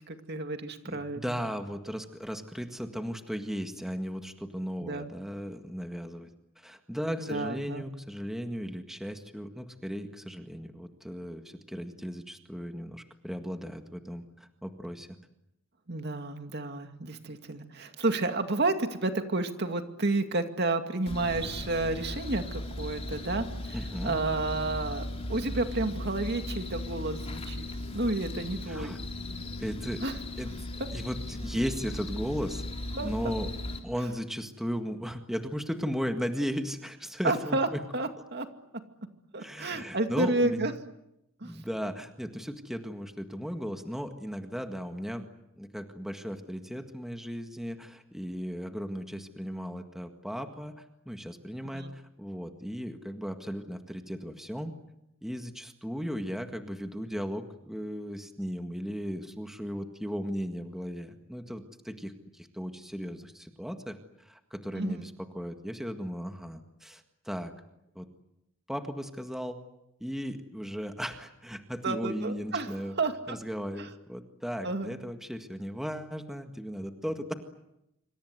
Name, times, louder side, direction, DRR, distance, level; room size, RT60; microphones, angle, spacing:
voice 1, 0.1-1.4 4.8-5.1 7.2-7.8 15.9-25.0 25.3-27.7 27.9-29.0 30.0-30.1 32.9-33.1 37.2-37.7 37.9-38.5 39.3-40.7 41.4-41.6 51.7-51.9 64.7-65.1 71.8-73.4 73.8-73.9 74.6-74.9, right 2 dB, 55° right, 6 dB, 2.3 m, -31 dB
voice 2, 0.8-6.3 6.6-15.1 23.7-24.2 28.7-29.0 29.6-30.0 30.4-30.5 30.9-32.6 33.0-33.5 33.8-37.8 39.4-40.7 41.4-45.3 45.6-54.8 55.2-67.5 68.0-68.1 68.7-69.6 70.0-73.0 73.3-77.3, equal, ahead, 5 dB, 1.8 m, -36 dB
sound 1, 21.1-33.8, left 1 dB, 30° left, 3.6 m, -37 dB
26.5 x 26.0 x 8.1 m, 0.85 s
head